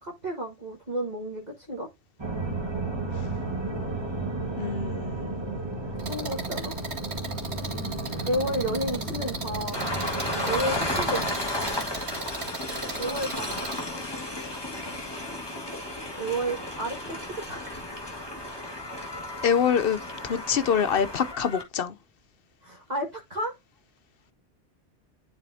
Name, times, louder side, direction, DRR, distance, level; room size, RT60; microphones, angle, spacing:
voice 1, 0.0-1.9 5.1-5.4 6.1-6.7 8.3-9.8 10.5-11.4 13.0-13.7 16.1-17.8 22.6-23.5, right 1 dB, 40° right, 1.7 m, -32 dB
sound 1, 2.2-11.3, right 2 dB, 25° right, 1.8 m, -33 dB
voice 2, 4.6-5.4 19.4-21.9, left 7 dB, 60° left, 0.8 m, -26 dB
sound 2, 6.0-13.8, right 3 dB, 70° right, 2.3 m, -37 dB
Train, 9.7-21.6, left 1 dB, 20° left, 1.9 m, -33 dB
10.5 x 4.1 x 2.7 m
omnidirectional pair, 1.1 m